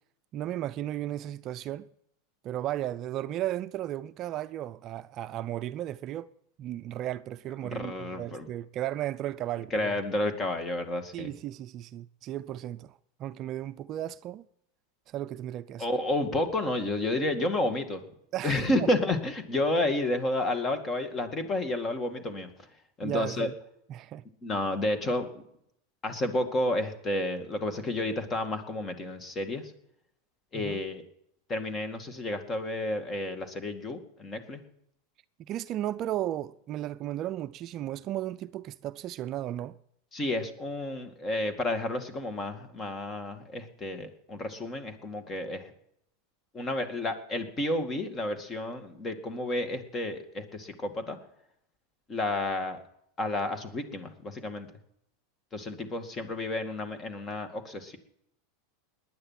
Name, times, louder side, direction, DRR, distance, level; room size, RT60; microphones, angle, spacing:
voice 1, 0.3-1.9 2.4-6.3 6.6-10.0 11.1-14.4 15.1-15.9 18.3-18.9 23.0-23.5 23.9-24.2 30.5-30.8 35.5-39.7, right 13 dB, 40° right, 0.5 m, -35 dB
voice 2, 7.6-8.5 9.7-11.3 15.8-18.0 18.4-22.5 23.0-23.5 24.4-25.4 26.0-29.7 30.5-31.0 31.5-34.6 40.1-45.7 46.5-51.2 52.1-52.8 53.2-54.7 55.5-58.0, left 1 dB, 25° left, 2.1 m, -31 dB
19.0 x 10.0 x 5.9 m
supercardioid pair, 115°, 0 cm